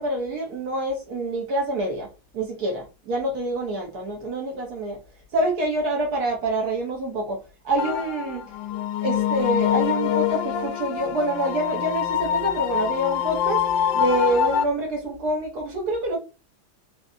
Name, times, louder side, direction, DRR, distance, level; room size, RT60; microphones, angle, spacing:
voice 1, 0.0-2.1 2.3-5.0 5.3-7.4 7.6-8.4 9.0-13.6 13.9-16.2, right 1 dB, 50° right, 1.5 m, -26 dB
sound 1, 7.8-14.6, left 9 dB, 75° left, 1.2 m, -25 dB
4.0 x 2.9 x 2.4 m
omnidirectional pair, 2.3 m